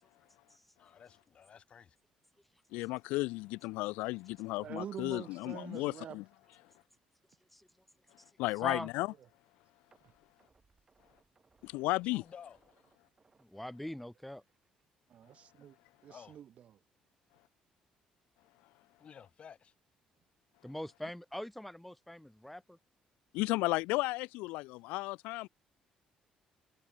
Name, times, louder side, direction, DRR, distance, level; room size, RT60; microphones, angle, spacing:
voice 1, 0.7-2.0 12.0-12.6 16.1-16.4 19.0-19.7, left 7 dB, 50° left, 5.2 m, -53 dB
voice 2, 2.7-6.2 8.4-9.1 11.6-12.2 23.3-25.5, left 22 dB, 85° left, 0.3 m, -34 dB
sound 1, 4.0-7.1 7.4-7.6 8.0-8.1 9.9-14.8 15.1-15.3 15.7-15.8, right 4 dB, 30° right, 5.2 m, -71 dB
voice 3, 4.6-6.2 10.0-10.1 15.1-15.8 16.0-16.8, right 10 dB, 60° right, 1.5 m, -46 dB
voice 4, 13.4-14.4 20.6-22.8, left 1 dB, 5° left, 1.0 m, -42 dB
supercardioid pair, 70°, 2 cm